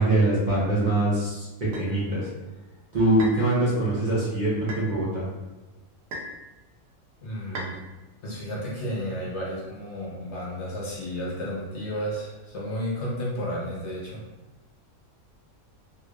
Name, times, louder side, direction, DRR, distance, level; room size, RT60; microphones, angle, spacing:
voice 1, 0.0-2.3 2.9-5.3, right 2 dB, 40° right, -8 dB, 0.9 m, -23 dB
sound 1, 1.7-1.9 3.2-3.5 4.7-4.9 6.1-6.4 7.5-7.8, right 1 dB, 65° right, 1.0 m, -35 dB
voice 2, 7.2-7.8 8.2-14.2, equal, 60° left, -4 dB, 1.1 m, -32 dB
3.2 x 3.1 x 2.4 m, 1.1 s
omnidirectional pair, 1.5 m